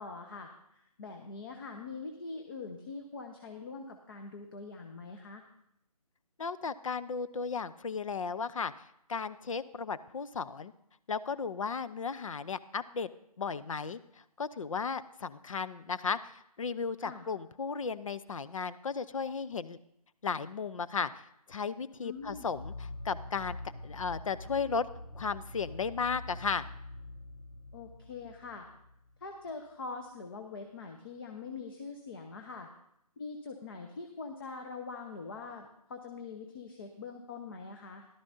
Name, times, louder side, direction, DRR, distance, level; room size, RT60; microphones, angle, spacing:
voice 1, 0.0-5.4 17.0-17.2 22.0-22.5 27.7-28.7 29.2-32.7 33.2-38.1, left 4 dB, 35° left, 4 dB, 0.9 m, -43 dB
voice 2, 6.4-10.7 11.1-13.1 13.4-19.8 20.2-24.9 25.1-26.7, left 5 dB, 55° left, 15 dB, 0.6 m, -35 dB
sound 1, 22.2-29.5, left 2 dB, 75° left, 2.2 m, -45 dB
14.5 x 12.0 x 2.7 m, 0.77 s
figure-of-eight pair, 155°, 20 cm